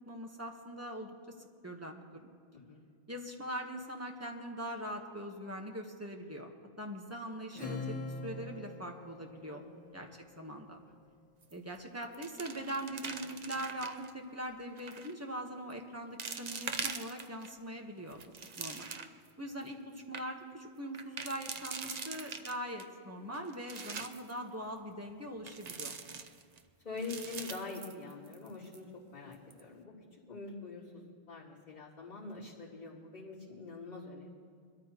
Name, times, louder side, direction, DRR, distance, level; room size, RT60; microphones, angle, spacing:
voice 1, 0.1-2.0 3.1-6.5 6.8-7.9 8.2-9.6 9.9-10.1 10.4-10.8 11.5-18.3 18.6-18.9 19.4-26.0, right 1 dB, 15° right, 2 dB, 1.2 m, -42 dB
Acoustic guitar / Strum, 7.5-10.5, left 2 dB, 10° left, 1.3 m, -43 dB
sound 1, 11.4-11.8 12.0-14.1 14.8-15.1 15.7-15.8 16.2-17.5 18.0-19.3 19.7-19.8 20.0-20.2 20.9-22.9 23.3-24.3 25.5-26.6 27.0-28.5 28.7-28.8 29.3-29.6, right 5 dB, 45° right, 0.7 m, -42 dB
voice 2, 26.8-28.9 29.1-29.9 30.3-34.3, left 3 dB, 40° left, -11 dB, 3.7 m, -44 dB
22.5 x 13.5 x 3.0 m, 2.2 s
omnidirectional pair, 1.1 m